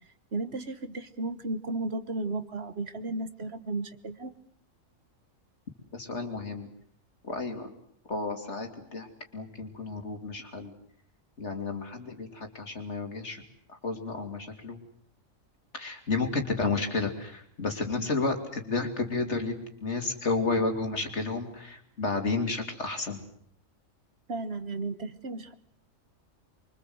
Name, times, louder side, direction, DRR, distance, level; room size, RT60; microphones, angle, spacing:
voice 1, 0.3-4.3 24.3-25.5, right 2 dB, 55° right, 11 dB, 1.5 m, -34 dB
voice 2, 5.9-6.7 7.2-7.7 8.1-10.7 11.4-13.4 13.7-14.8 15.7-19.5 19.8-23.2, left 3 dB, 60° left, 5 dB, 3.3 m, -31 dB
25.5 x 24.0 x 7.9 m, 0.64 s
omnidirectional pair, 1.4 m